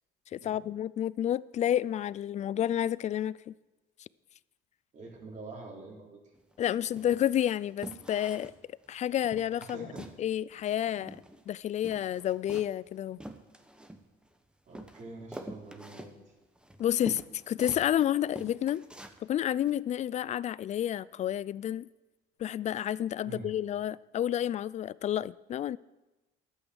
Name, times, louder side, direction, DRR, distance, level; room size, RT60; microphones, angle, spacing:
voice 1, 0.3-3.5 6.6-8.5 8.9-9.9 10.2-11.2 11.5-13.2 16.8-18.8 19.2-21.9 22.4-25.8, left 11 dB, 45° left, 0.4 m, -30 dB
voice 2, 4.9-6.2 9.6-10.0 14.7-16.3 23.2-23.5, right 3 dB, 45° right, 3.6 m, -46 dB
sound 1, 6.3-6.6 7.0-7.4 7.8-8.6 8.9-9.0 9.2-10.2 10.5-11.5 11.7-14.3 14.7-18.0 18.3-19.2 19.6-19.7, right 1 dB, 5° right, 1.0 m, -46 dB
12.0 x 8.3 x 7.0 m
cardioid pair, 110°, 17 cm